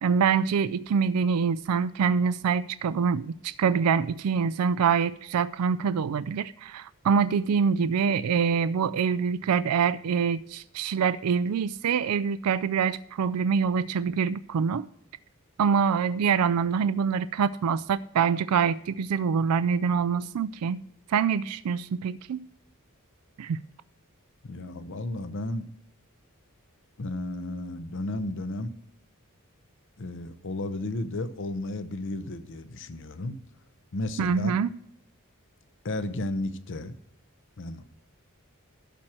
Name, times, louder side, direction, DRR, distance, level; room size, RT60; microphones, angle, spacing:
voice 1, 0.0-14.9 15.6-20.8 21.1-22.4 23.4-23.6 34.2-34.7, right 6 dB, 85° right, 0.4 m, -25 dB
voice 2, 24.4-25.7 27.0-28.7 30.0-33.4 33.9-34.5 35.8-36.9 37.6-37.9, left 2 dB, 60° left, 0.7 m, -33 dB
12.0 x 4.4 x 7.5 m
head